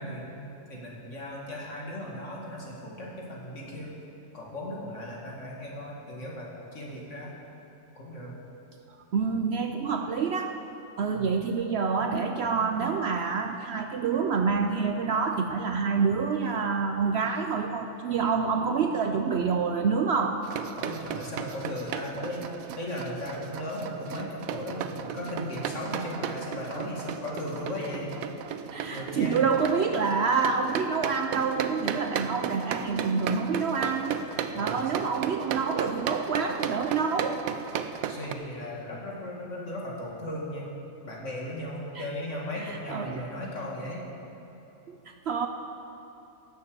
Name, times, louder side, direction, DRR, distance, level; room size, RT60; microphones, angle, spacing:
voice 1, 0.0-3.9 4.3-7.3 8.0-8.3 11.1-11.3 20.7-22.4 22.8-28.1 28.9-29.5 34.5-34.9 38.1-40.7 41.0-44.0, left 1 dB, 60° left, -3 dB, 2.4 m, -37 dB
voice 2, 9.1-10.6 11.0-20.4 28.7-37.4 41.9-42.0 42.6-43.2 44.9-45.5, right 5 dB, 60° right, 5 dB, 0.7 m, -27 dB
sound 1, 20.4-38.3, right 8 dB, 85° right, 1.1 m, -35 dB
sound 2, 25.8-28.0 32.1-34.7, left 3 dB, 40° left, 1.3 m, -49 dB
17.0 x 7.0 x 6.8 m, 3.0 s
omnidirectional pair, 1.4 m